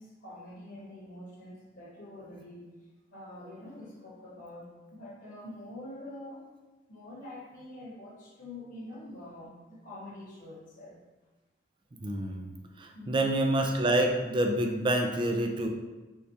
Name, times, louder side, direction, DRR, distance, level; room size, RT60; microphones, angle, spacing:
voice 1, 0.0-2.6 3.1-6.4 6.9-11.0 12.9-13.2, left 1 dB, 50° left, -7 dB, 0.9 m, -45 dB
voice 2, 12.0-12.5 12.8-15.7, right 1 dB, 25° right, 3 dB, 0.3 m, -27 dB
4.5 x 3.4 x 2.7 m, 1.2 s
head